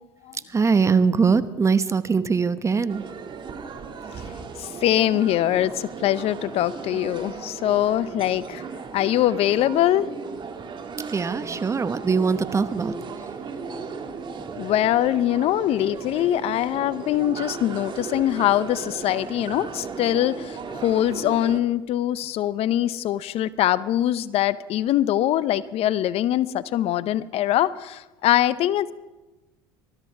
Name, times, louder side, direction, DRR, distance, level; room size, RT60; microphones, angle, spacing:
voice 1, 0.3-3.0 11.1-13.3, right 5 dB, 25° right, 13 dB, 1.0 m, -22 dB
sound 1, 2.9-21.6, right 5 dB, 40° right, 1.9 m, -36 dB
voice 2, 4.6-8.6 8.9-10.1 14.6-28.9, left 12 dB, 55° left, 17 dB, 0.6 m, -23 dB
20.0 x 13.5 x 4.8 m, 1.1 s
hypercardioid pair, 75°, 12 cm